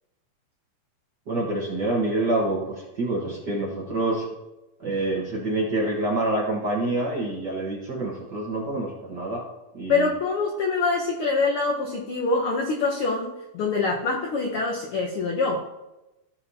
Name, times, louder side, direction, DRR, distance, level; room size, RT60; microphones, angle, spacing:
voice 1, 1.3-4.2 4.8-9.4 9.7-10.1, right 2 dB, 50° right, -3 dB, 1.4 m, -27 dB
voice 2, 9.9-15.7, left 3 dB, 75° left, 0 dB, 1.3 m, -25 dB
15.0 x 5.7 x 2.7 m, 0.99 s
omnidirectional pair, 3.6 m